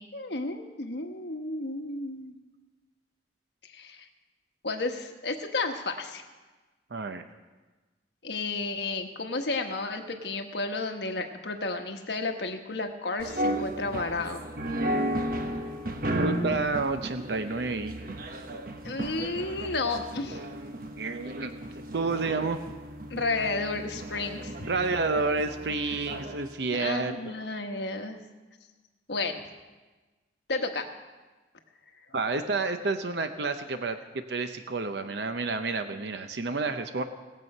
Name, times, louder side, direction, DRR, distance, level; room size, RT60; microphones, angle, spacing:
voice 1, 0.0-2.4 3.6-4.1 4.6-6.2 8.2-14.5 18.8-20.4 23.1-24.5 26.7-28.2 29.1-29.4 30.5-30.9, left 3 dB, 75° left, 5 dB, 1.3 m, -32 dB
voice 2, 6.9-7.2 16.2-17.9 21.0-22.6 24.7-27.3 32.1-37.0, right 3 dB, 75° right, 8 dB, 0.7 m, -30 dB
sound 1, 13.2-26.5, right 1 dB, 50° right, 1.0 m, -34 dB
19.5 x 7.7 x 5.4 m, 1.2 s
head